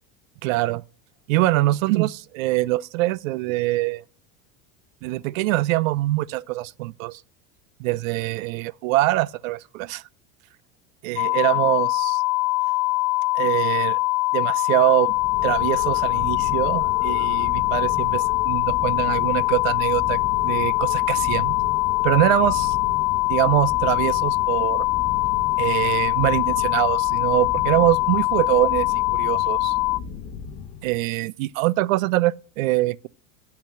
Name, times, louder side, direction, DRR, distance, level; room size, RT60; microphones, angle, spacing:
voice 1, 0.4-0.8 1.3-4.0 5.0-7.2 7.8-10.0 11.0-12.2 13.3-14.0 14.3-20.2 20.4-21.6 22.0-22.8 23.3-24.9 25.6-29.7 30.8-33.1, right 18 dB, 85° right, 0.6 m, -23 dB
sound 1, 11.2-30.0, left 22 dB, 70° left, 0.5 m, -23 dB
sound 2, 15.1-31.1, left 6 dB, 45° left, 1.0 m, -35 dB
8.7 x 5.8 x 7.5 m
supercardioid pair, 150°, 39 cm